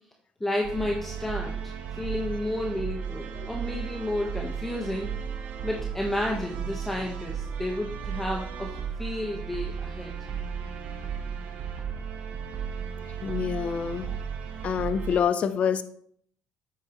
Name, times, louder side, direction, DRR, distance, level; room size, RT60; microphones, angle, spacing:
voice 1, 0.4-5.1 5.6-8.7 9.0-10.1, left 1 dB, 10° left, 0 dB, 1.3 m, -31 dB
sound 1, 0.6-15.2, right 7 dB, 80° right, 1.3 m, -35 dB
voice 2, 13.2-14.1 14.6-15.8, left 7 dB, 55° left, 12 dB, 0.7 m, -27 dB
9.1 x 8.2 x 3.1 m, 0.65 s
cardioid pair, 85°, 3 cm